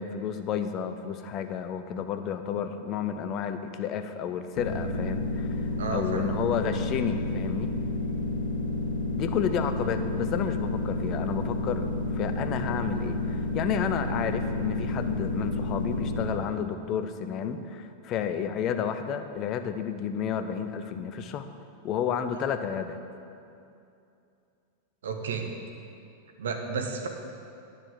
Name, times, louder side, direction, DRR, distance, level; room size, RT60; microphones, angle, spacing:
voice 1, 0.0-7.7 9.2-21.5 21.8-23.0, left 8 dB, 35° left, 9 dB, 0.7 m, -31 dB
sound 1, 4.6-16.2, left 2 dB, 55° left, 2.0 m, -30 dB
voice 2, 5.8-6.3 25.0-25.5 26.4-27.1, right 5 dB, 65° right, 4 dB, 1.1 m, -32 dB
10.0 x 6.7 x 7.3 m, 2.6 s
figure-of-eight pair, 90°, 0 cm